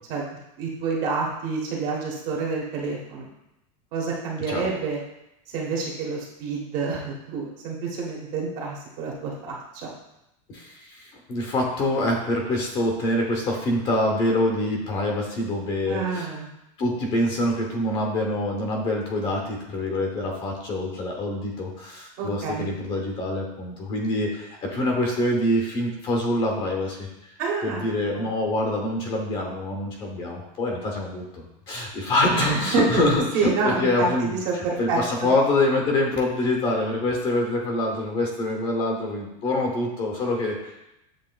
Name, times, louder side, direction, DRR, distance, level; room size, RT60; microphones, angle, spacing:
voice 1, 0.6-3.3 3.9-5.0 5.5-9.9 15.9-16.5 22.2-22.7 27.4-27.9 28.1-28.3 32.3-32.8 33.3-35.3, right 4 dB, 45° right, -2 dB, 1.1 m, -28 dB
voice 2, 10.5-16.3 16.8-27.1 27.6-40.8, left 1 dB, 30° left, 1 dB, 0.9 m, -25 dB
7.6 x 2.8 x 2.3 m, 0.88 s
supercardioid pair, 160°, 18 cm